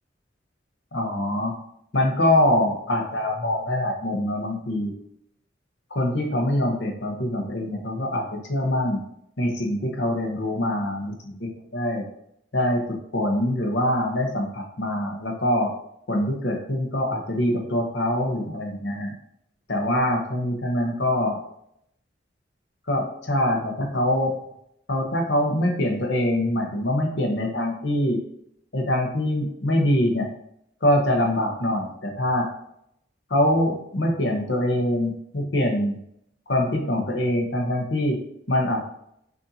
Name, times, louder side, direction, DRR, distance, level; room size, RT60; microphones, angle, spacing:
voice 1, 0.9-1.5 1.9-4.9 5.9-9.0 9.4-12.0 12.5-15.7 16.1-19.1 19.7-21.4 22.9-24.3 24.9-28.2 28.7-30.3 30.8-32.5 33.3-36.0 36.5-38.2 38.5-38.9, left 1 dB, 70° left, 1 dB, 1.0 m, -24 dB
6.2 x 2.7 x 2.8 m, 0.74 s
head